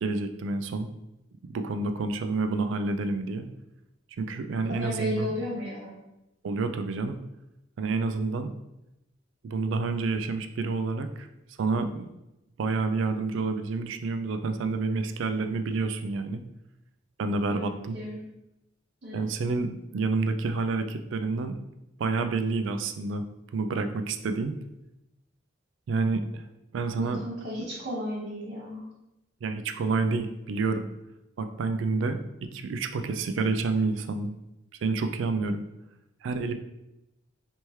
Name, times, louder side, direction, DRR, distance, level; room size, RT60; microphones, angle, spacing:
voice 1, 0.0-0.9 1.4-3.5 4.2-5.3 6.4-7.2 7.8-8.5 9.4-11.3 11.6-12.1 12.6-16.4 17.2-17.9 19.1-21.5 22.0-23.3 23.5-24.5 25.9-26.5 26.7-27.2 29.4-30.9 31.4-34.4 34.8-35.6 36.2-36.5, right 3 dB, 75° right, 8 dB, 0.3 m, -29 dB
voice 2, 4.7-5.9 17.5-18.2 19.0-19.3 27.0-28.9, left 1 dB, 55° right, -8 dB, 0.9 m, -34 dB
3.4 x 2.9 x 3.0 m, 0.91 s
head